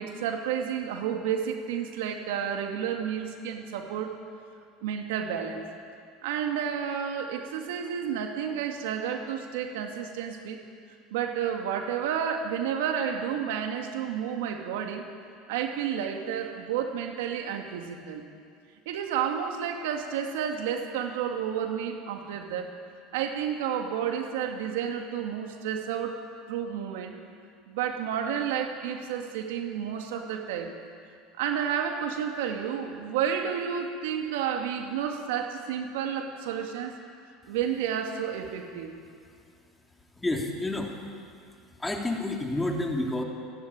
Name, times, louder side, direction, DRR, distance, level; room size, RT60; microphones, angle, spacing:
voice 1, 0.0-4.2 4.8-5.6 6.2-10.6 11.1-15.1 15.5-18.2 18.9-22.7 23.1-26.2 26.5-27.2 27.7-30.7 31.4-36.9 37.5-38.9, right 8 dB, 80° right, 4 dB, 2.3 m, -31 dB
voice 2, 40.2-41.1 41.7-43.2, left 2 dB, 10° left, 1 dB, 3.3 m, -30 dB
29.0 x 11.5 x 9.0 m, 2.3 s
supercardioid pair, 110°, 0 cm